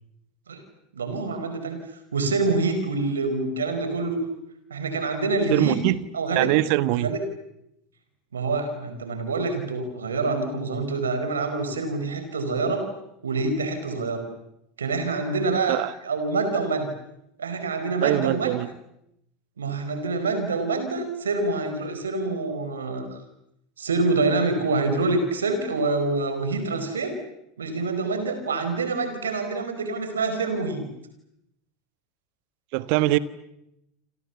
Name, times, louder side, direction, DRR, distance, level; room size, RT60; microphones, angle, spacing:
voice 1, 0.9-1.8 2.1-4.2 4.7-5.8 6.1-6.5 6.9-7.2 8.3-12.9 13.2-14.2 14.8-15.8 16.0-16.9 17.4-18.5 19.6-23.1 23.8-27.1 27.6-30.9, right 3 dB, 90° right, 7 dB, 5.0 m, -26 dB
voice 2, 5.5-6.0 6.3-7.1 15.7-15.9 18.0-18.7 32.7-33.2, right 17 dB, 60° right, 15 dB, 1.4 m, -22 dB
28.5 x 27.5 x 7.2 m, 0.82 s
hypercardioid pair, 85°, 0 cm